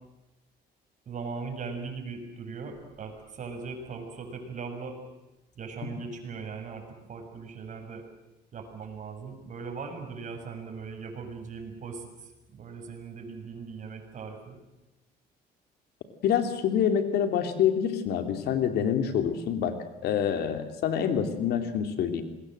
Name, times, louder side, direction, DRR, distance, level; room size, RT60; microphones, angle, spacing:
voice 1, 1.0-5.0 5.5-8.0 8.5-14.6, right 5 dB, 50° right, 4 dB, 6.8 m, -39 dB
voice 2, 16.2-19.7 20.0-22.2, left 8 dB, 75° left, 7 dB, 3.0 m, -26 dB
27.0 x 21.0 x 7.9 m, 0.97 s
cardioid pair, 110°, 17 cm